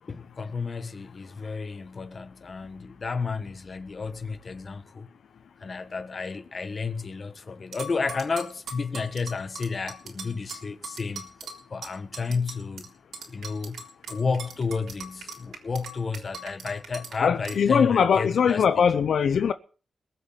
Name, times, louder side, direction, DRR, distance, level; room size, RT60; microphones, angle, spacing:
voice 1, 0.1-5.1 5.6-12.9 13.3-13.8 14.1-18.9, left 4 dB, 40° left, 1.3 m, -32 dB
sound 1, 7.7-12.9 13.1-17.1 17.4-17.6, right 4 dB, 85° right, 3.6 m, -40 dB
voice 2, 17.2-19.5, left 7 dB, 70° left, 0.8 m, -21 dB
21.0 x 7.2 x 7.3 m
wide cardioid pair, 120°, 0 cm